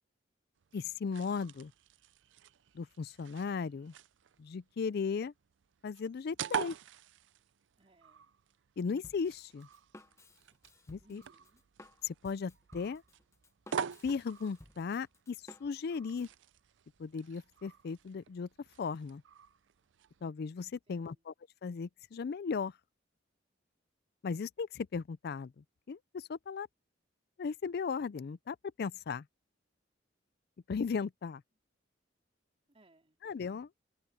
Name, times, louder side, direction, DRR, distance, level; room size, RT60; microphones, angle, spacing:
sound 1, 0.6-20.3, right 7 dB, 75° right, 0.5 m, -46 dB
voice 1, 0.7-1.7 2.7-3.9 4.4-5.3 5.8-6.8 8.8-9.7 10.9-11.2 12.0-13.0 14.0-15.4 15.6-16.3 17.0-18.5 18.8-19.2 20.2-21.3 21.6-22.7 24.2-26.7 27.4-29.2 30.7-31.4 33.2-33.7, left 5 dB, 60° left, 0.4 m, -36 dB
voice 2, 7.8-8.3 11.0-11.6 20.9-21.3 32.7-33.2, right 2 dB, 30° right, 3.9 m, -66 dB
Drum kit, 9.0-16.3, left 1 dB, 15° left, 1.0 m, -57 dB
head